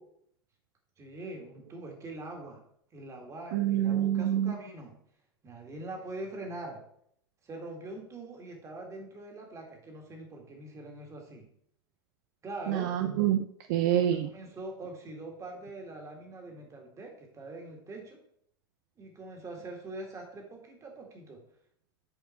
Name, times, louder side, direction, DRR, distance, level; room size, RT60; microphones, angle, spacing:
voice 1, 1.0-2.6 2.9-4.9 5.4-6.8 7.4-11.4 12.4-12.9 13.9-14.0 14.3-18.2 19.0-21.4, right 2 dB, 25° right, 1 dB, 2.1 m, -43 dB
voice 2, 3.5-4.5 12.7-14.3, right 11 dB, 50° right, 8 dB, 0.5 m, -27 dB
7.6 x 5.0 x 4.3 m, 0.68 s
figure-of-eight pair, 85°, 12 cm